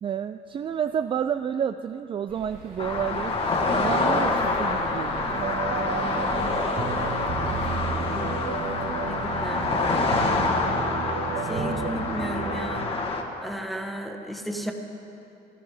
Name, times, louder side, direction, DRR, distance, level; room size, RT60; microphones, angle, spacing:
voice 1, 0.0-3.4 3.7-5.4 11.6-12.2, right 8 dB, 30° right, 10 dB, 0.3 m, -30 dB
sound 1, 2.3-10.8, right 3 dB, 80° right, 4.1 m, -44 dB
sound 2, 2.8-13.2, left 3 dB, 35° left, 1.5 m, -26 dB
sound 3, 5.3-12.9, right 5 dB, 60° right, 1.3 m, -32 dB
voice 2, 9.0-10.4 11.4-12.9 13.4-14.7, equal, ahead, 4 dB, 1.3 m, -34 dB
15.5 x 14.5 x 5.0 m, 2.9 s
cardioid pair, 110°, 17 cm